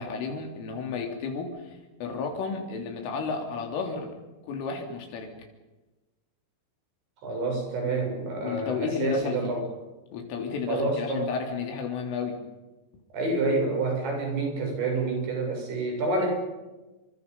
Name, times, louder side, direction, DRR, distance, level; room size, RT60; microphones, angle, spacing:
voice 1, 0.0-4.2 4.4-5.3 8.4-9.5 10.1-12.4, left 5 dB, 85° left, 3 dB, 5.9 m, -32 dB
voice 2, 7.2-9.7 10.7-11.3 13.1-16.4, right 2 dB, 65° right, 2 dB, 9.4 m, -28 dB
29.5 x 25.0 x 5.5 m, 1.1 s
omnidirectional pair, 5.6 m